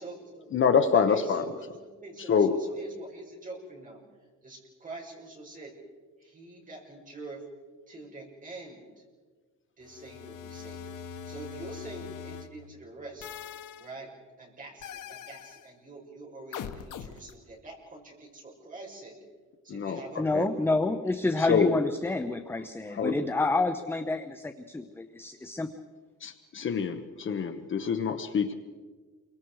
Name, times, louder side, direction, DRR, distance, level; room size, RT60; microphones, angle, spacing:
voice 1, 0.0-0.5 0.9-4.0 4.4-5.7 6.2-7.4 7.9-9.0 9.8-10.8 11.2-13.3 13.8-14.1 14.4-19.1 19.6-20.7, right 2 dB, 25° right, -1 dB, 5.8 m, -44 dB
voice 2, 0.5-1.4 2.3-2.6 19.7-20.0 20.3-20.4 21.5-21.7 23.0-23.2 26.2-28.5, left 6 dB, 40° left, 8 dB, 1.1 m, -25 dB
sound 1, 9.8-12.5 13.2-13.9 14.8-15.7 16.5-17.3, left 7 dB, 80° left, 1.4 m, -42 dB
voice 3, 20.2-25.7, left 2 dB, 5° left, 7 dB, 0.7 m, -28 dB
29.0 x 24.0 x 4.8 m, 1.4 s
cardioid pair, 175°, 31 cm